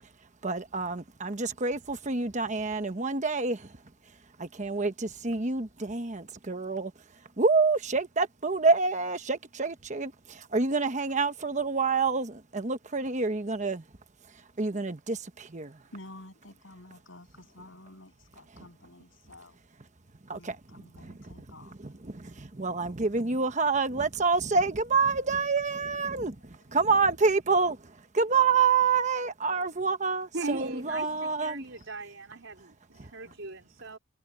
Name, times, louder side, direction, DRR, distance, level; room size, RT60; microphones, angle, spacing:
voice 1, 0.4-3.8 4.4-6.9 7.4-13.8 14.6-15.8 20.2-21.1 21.8-27.8 28.1-31.6 33.0-33.1, right 4 dB, 40° right, 1.1 m, -27 dB
voice 2, 15.6-19.6 20.3-22.0 26.2-26.9 31.2-31.3 31.7-32.0 32.6-33.5, left 1 dB, 75° left, 7.7 m, -52 dB
voice 3, 30.3-34.0, right 2 dB, 75° right, 4.0 m, -39 dB
head